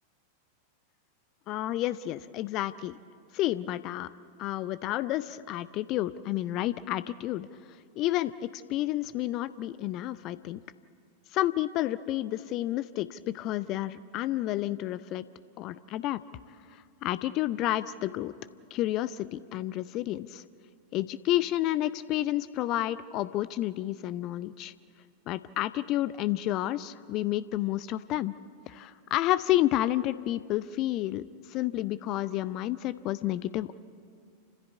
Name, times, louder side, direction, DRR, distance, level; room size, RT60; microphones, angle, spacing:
voice 1, 1.5-3.0 3.3-4.1 4.4-10.6 11.3-15.2 15.6-16.2 16.7-18.3 18.7-20.4 20.9-24.7 25.3-28.3 28.7-33.8, left 14 dB, 40° left, 15 dB, 0.5 m, -30 dB
28.5 x 15.0 x 8.3 m, 2.3 s
figure-of-eight pair, 90°, 0 cm